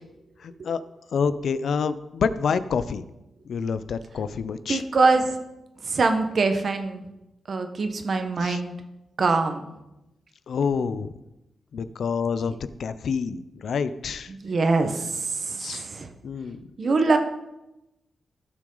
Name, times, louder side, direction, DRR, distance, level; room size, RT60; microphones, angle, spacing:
voice 1, 0.4-0.8 1.1-3.0 3.5-4.8 8.4-8.6 10.5-11.1 11.7-14.3 15.6-15.9 16.2-16.6, left 6 dB, 70° left, 13 dB, 0.5 m, -27 dB
voice 2, 4.7-5.4 5.8-7.0 7.5-8.7 9.2-9.6 14.3-16.1 16.8-17.2, right 3 dB, 50° right, 6 dB, 1.2 m, -23 dB
15.5 x 6.1 x 3.9 m, 0.95 s
cardioid pair, 100°, 0 cm